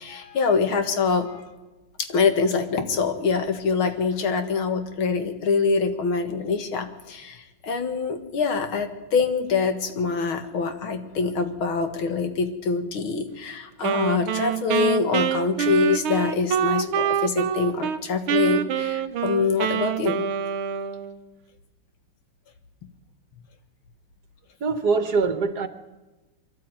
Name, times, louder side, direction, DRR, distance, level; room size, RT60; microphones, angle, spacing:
voice 1, 0.0-1.5 2.0-20.2, left 5 dB, 80° left, 2.6 m, -25 dB
Wind instrument woodwind instrument, 13.8-18.0 18.3-21.2, right 8 dB, 90° right, 1.8 m, -26 dB
voice 2, 24.6-25.7, right 4 dB, 55° right, 1.6 m, -23 dB
23.5 x 12.5 x 9.2 m
omnidirectional pair, 2.3 m